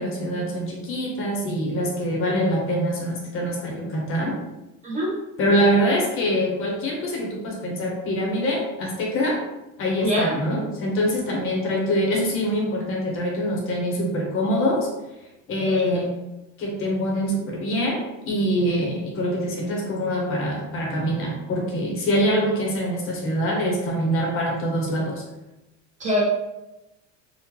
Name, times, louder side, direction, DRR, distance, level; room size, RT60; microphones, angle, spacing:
voice 1, 0.0-4.3 5.4-9.4 9.8-14.9 15.5-16.1 16.6-18.0 18.3-25.2, equal, 40° left, -1 dB, 0.7 m, -24 dB
voice 2, 4.8-5.1 10.0-10.3 15.7-15.8 26.0-26.2, left 1 dB, 20° right, -5 dB, 0.6 m, -23 dB
3.6 x 2.1 x 3.0 m, 0.98 s
cardioid pair, 175°, 33 cm